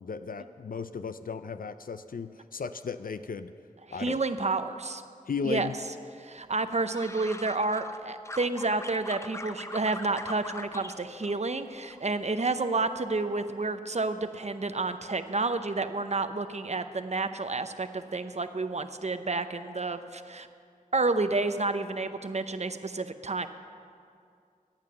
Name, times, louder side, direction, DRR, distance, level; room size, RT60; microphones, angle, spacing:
voice 1, 0.0-3.5 3.9-4.2 5.3-5.8, left 5 dB, 75° left, 11 dB, 0.4 m, -35 dB
voice 2, 4.0-5.0 5.4-5.7 6.2-20.5 20.9-23.5, right 3 dB, 50° right, 10 dB, 0.7 m, -30 dB
sound 1, 6.5-8.0 8.2-10.9 11.2-12.0 12.3-12.7, left 1 dB, 20° left, 0.7 m, -42 dB
14.5 x 9.0 x 6.8 m, 2.4 s
wide cardioid pair, 45°, 15 cm